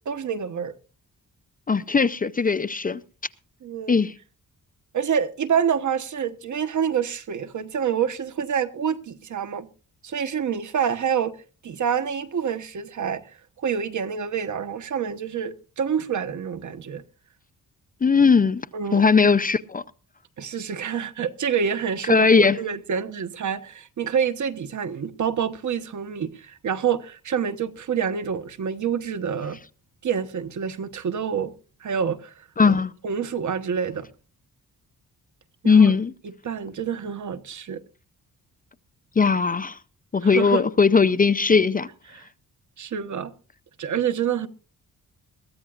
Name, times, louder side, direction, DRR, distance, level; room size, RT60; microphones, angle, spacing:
voice 1, 0.0-0.7 3.6-4.0 4.9-9.7 10.0-11.4 11.6-13.2 13.6-17.0 18.7-19.0 20.4-29.6 30.0-31.5 31.8-32.7 33.0-34.1 35.6-35.9 36.4-37.8 40.3-40.6 42.1-42.2 42.8-43.3 43.8-44.5, right 7 dB, 60° right, 1.2 m, -27 dB
voice 2, 1.7-3.0 3.9-4.1 18.0-18.6 18.9-19.8 22.1-22.6 32.6-32.9 35.6-36.1 39.2-39.8 40.1-41.9, left 5 dB, 25° left, 0.6 m, -18 dB
22.0 x 14.5 x 2.5 m
cardioid pair, 105°, 34 cm